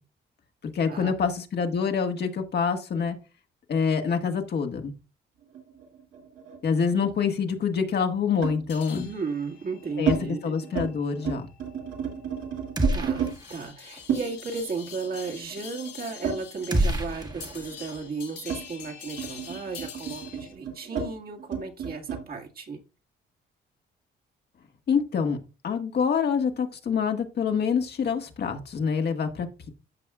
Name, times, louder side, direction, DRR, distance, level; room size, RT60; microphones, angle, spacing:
voice 1, 0.7-3.2 3.7-4.9 6.6-9.1 10.0-11.5 24.9-25.4 25.6-29.7, left 6 dB, 55° left, 5 dB, 1.6 m, -26 dB
sound 1, 5.5-7.1 8.4-8.7 9.4-10.2 10.6-10.9 11.2-13.3 14.1-17.0 17.3-22.2, right 7 dB, 75° right, 2.6 m, -32 dB
sound 2, 8.7-20.5, left 8 dB, 80° left, 3.6 m, -46 dB
voice 2, 8.9-10.5 12.9-22.8, right 4 dB, 50° right, 2 dB, 1.8 m, -35 dB
sound 3, 12.8-13.6 13.9-14.0 16.7-18.0, right 1 dB, 20° right, 1.3 m, -27 dB
14.5 x 5.5 x 2.4 m, 0.31 s
cardioid pair, 90°, 20 cm